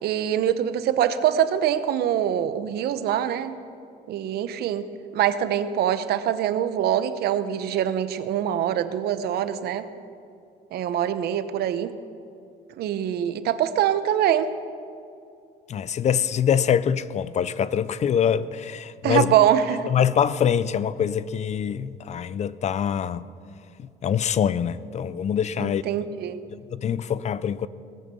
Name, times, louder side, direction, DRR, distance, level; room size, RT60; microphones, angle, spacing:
voice 1, 0.0-3.5 4.1-4.8 5.1-9.9 10.7-11.9 12.8-14.5 19.0-19.9 25.6-26.4, right 10 dB, 70° right, 0.9 m, -24 dB
voice 2, 15.7-19.3 19.9-23.2 24.0-25.8 26.5-27.7, left 8 dB, 40° left, 0.5 m, -24 dB
18.5 x 10.0 x 6.9 m
cardioid pair, 110°, 17 cm